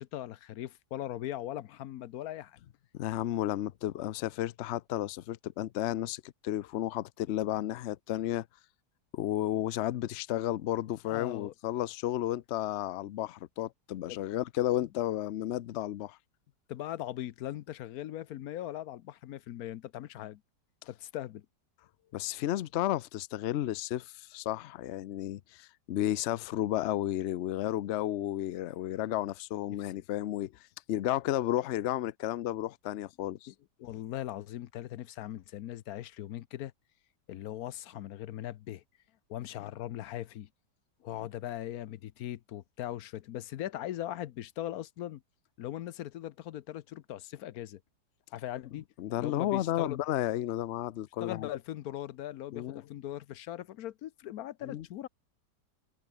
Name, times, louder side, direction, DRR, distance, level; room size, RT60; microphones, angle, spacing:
voice 1, 0.0-2.6 11.1-11.5 14.1-14.2 16.7-20.4 20.9-21.4 30.0-30.1 33.5-33.6 33.8-36.7 37.3-38.8 39.3-40.5 41.0-45.2 45.6-47.8 48.3-48.8 49.2-50.0 51.2-55.1, left 13 dB, 65° left, 1.1 m, -39 dB
voice 2, 2.9-8.5 9.1-16.2 22.1-30.5 30.9-33.5 49.0-51.5 52.5-52.8 54.6-54.9, left 13 dB, 85° left, 0.6 m, -32 dB
omnidirectional pair, 1.9 m